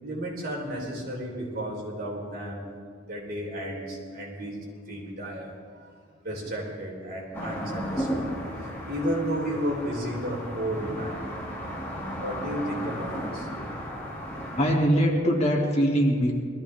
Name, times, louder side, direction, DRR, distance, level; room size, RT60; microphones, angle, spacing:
voice 1, 0.0-2.6 3.1-5.9 6.2-8.3 8.9-11.2 12.2-13.5, equal, 55° right, -2 dB, 3.8 m, -33 dB
sound 1, 7.3-14.7, equal, 10° left, 2.4 m, -34 dB
voice 2, 14.6-16.3, equal, 35° left, -1 dB, 2.4 m, -22 dB
21.0 x 14.5 x 3.5 m, 2.1 s
head